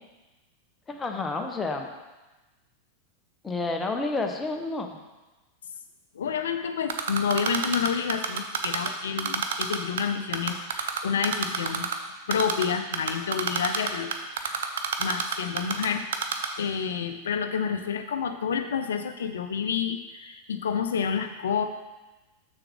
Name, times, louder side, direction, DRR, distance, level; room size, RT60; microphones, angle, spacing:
voice 1, 0.9-1.9 3.4-5.0, left 3 dB, 15° left, 4 dB, 0.8 m, -30 dB
voice 2, 6.1-11.9 12.3-14.1 14.4-16.1 16.6-21.7, left 7 dB, 65° left, 8 dB, 0.6 m, -29 dB
Typing, 6.9-8.9 9.2-10.0 10.3-11.9 12.3-12.7 12.9-15.9 16.1-16.5, right 8 dB, 60° right, 0.6 m, -27 dB
7.1 x 6.8 x 3.6 m, 1.1 s
figure-of-eight pair, 90°, 0 cm